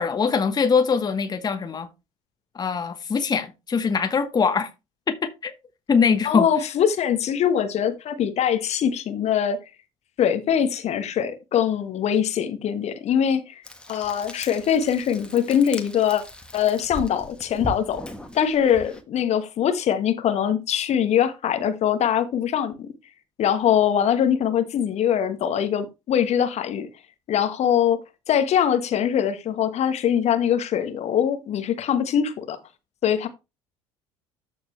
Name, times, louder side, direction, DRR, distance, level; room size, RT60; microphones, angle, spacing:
voice 1, 0.0-1.9 2.5-4.7 5.2-5.5 5.9-6.5, left 5 dB, 25° left, 1.1 m, -22 dB
voice 2, 6.2-9.6 10.2-13.6 13.9-16.2 16.5-18.0 18.3-22.9 23.4-26.9 27.3-28.0 28.3-32.6 33.0-33.3, left 9 dB, 45° left, 1.2 m, -22 dB
Frying (food), 13.6-19.0, equal, 5° left, 1.6 m, -38 dB
13.0 x 4.4 x 3.2 m
figure-of-eight pair, 60°, 16 cm